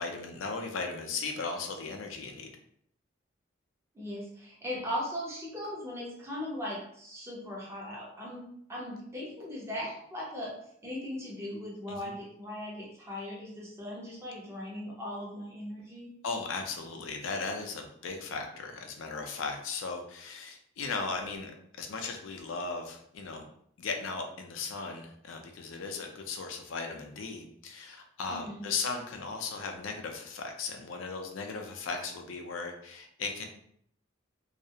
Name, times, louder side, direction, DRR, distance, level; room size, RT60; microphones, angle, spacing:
voice 1, 0.0-2.5 11.9-12.1 16.2-21.5 21.8-23.5 23.8-33.4, left 4 dB, 85° left, 4 dB, 0.4 m, -37 dB
voice 2, 3.9-10.5 10.8-16.1 28.3-28.6, left 1 dB, 15° right, -5 dB, 0.7 m, -38 dB
2.3 x 2.0 x 2.7 m, 0.68 s
head